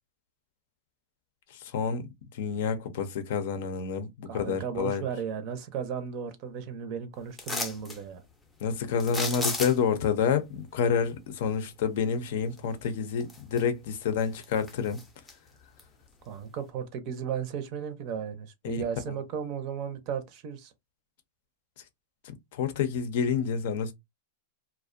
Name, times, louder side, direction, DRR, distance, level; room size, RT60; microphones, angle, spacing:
voice 1, 1.5-5.0 8.6-15.0 18.6-18.8 22.2-23.9, left 6 dB, 65° left, 0.5 m, -29 dB
voice 2, 4.3-8.2 16.2-20.7, right 7 dB, 45° right, 0.5 m, -35 dB
sound 1, 7.4-8.0 9.0-10.0 12.6-12.7 13.2-13.9 14.2-15.3 15.8-15.9, left 3 dB, 10° left, 0.5 m, -34 dB
2.4 x 2.1 x 2.5 m
supercardioid pair, 145°, 0 cm